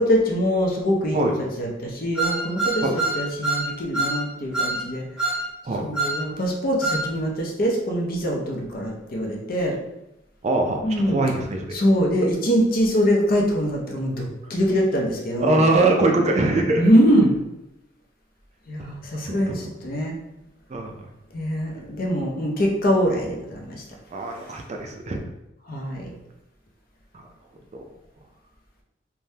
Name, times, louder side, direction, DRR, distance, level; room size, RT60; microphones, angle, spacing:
voice 1, 0.0-1.2 1.6-5.0 5.8-9.7 10.8-11.2 11.7-15.6 16.7-17.3 18.7-20.1 21.3-23.8 25.7-26.1, equal, 50° left, 0 dB, 0.6 m, -23 dB
sound 1, 2.2-3.7 3.9-4.2 4.5-4.8 5.2-5.4 5.9-6.2 6.8-7.0, right 2 dB, 5° right, 0.9 m, -24 dB
voice 2, 10.4-11.7 15.4-16.9 19.2-19.7 20.7-21.1 24.1-25.2 27.1-27.2 27.7-27.9, right 2 dB, 35° right, 2 dB, 0.3 m, -22 dB
3.4 x 2.1 x 2.7 m, 0.89 s
head